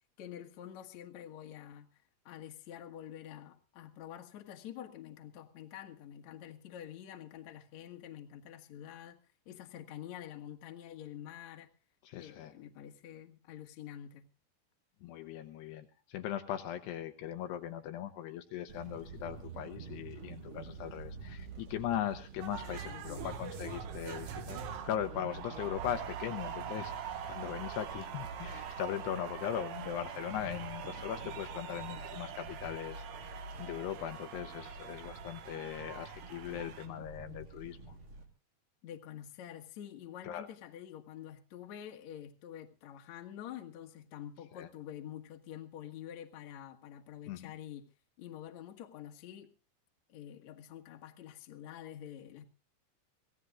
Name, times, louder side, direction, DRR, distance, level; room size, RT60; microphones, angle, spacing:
voice 1, 0.2-9.2 9.5-11.7 12.2-14.2 22.6-23.5 38.8-47.9 48.2-49.5 50.1-52.4, left 10 dB, 55° left, 3 dB, 2.3 m, -47 dB
voice 2, 12.0-12.5 15.0-33.0 33.6-38.0 40.2-40.5 44.5-44.7 47.3-47.5, left 10 dB, 75° left, 6 dB, 2.8 m, -39 dB
sound 1, 18.7-38.2, right 4 dB, 40° right, 2.0 m, -48 dB
sound 2, 22.4-36.9, right 8 dB, 75° right, 3.5 m, -44 dB
24.5 x 17.0 x 2.5 m, 0.33 s
omnidirectional pair, 5.0 m